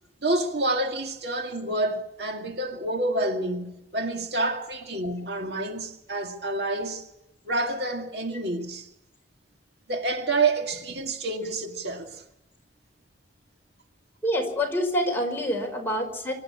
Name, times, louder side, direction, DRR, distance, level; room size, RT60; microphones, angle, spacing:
voice 1, 0.2-7.0 7.5-8.9 9.9-12.2, right 2 dB, 65° right, 2.2 m, -28 dB
voice 2, 14.2-16.3, equal, 15° left, 4.9 m, -26 dB
24.5 x 12.0 x 8.7 m
head